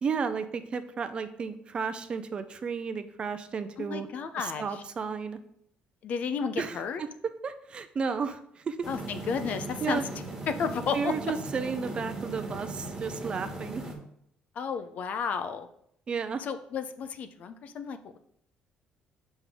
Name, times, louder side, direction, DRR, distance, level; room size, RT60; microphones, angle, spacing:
voice 1, 0.0-4.1 4.4-5.4 6.6-7.1 7.4-8.8 9.8-10.0 10.9-13.8 16.1-16.4, right 5 dB, 35° right, 10 dB, 0.5 m, -33 dB
voice 2, 3.8-4.8 6.0-7.0 8.9-10.0 10.5-11.1 14.6-15.7 16.4-18.2, left 6 dB, 55° left, 10 dB, 0.5 m, -32 dB
sound 1, 8.8-13.9, right 2 dB, 20° right, 1.6 m, -38 dB
6.6 x 5.3 x 3.6 m, 0.71 s
cardioid pair, 120°, 3 cm